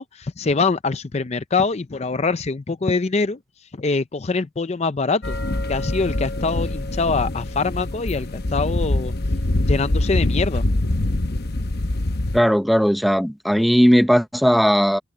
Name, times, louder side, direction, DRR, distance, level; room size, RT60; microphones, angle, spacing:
voice 1, 0.0-3.4 3.8-5.4 5.7-9.1 9.6-10.7, left 4 dB, 35° left, 0.5 m, -24 dB
sound 1, 5.2-12.4, left 1 dB, 55° left, 0.9 m, -24 dB
voice 2, 12.3-15.0, equal, ahead, 0.8 m, -17 dB
head